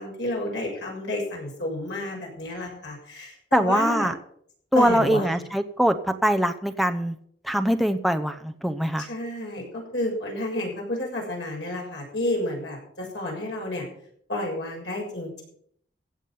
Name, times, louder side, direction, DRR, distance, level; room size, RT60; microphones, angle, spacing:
voice 1, 0.0-4.1 4.7-5.4 9.0-13.8 14.3-15.4, left 1 dB, 85° left, -1 dB, 6.6 m, -30 dB
voice 2, 3.5-4.1 4.7-7.1 7.5-9.1, equal, ahead, 6 dB, 0.7 m, -23 dB
16.0 x 7.3 x 7.1 m, 0.65 s
head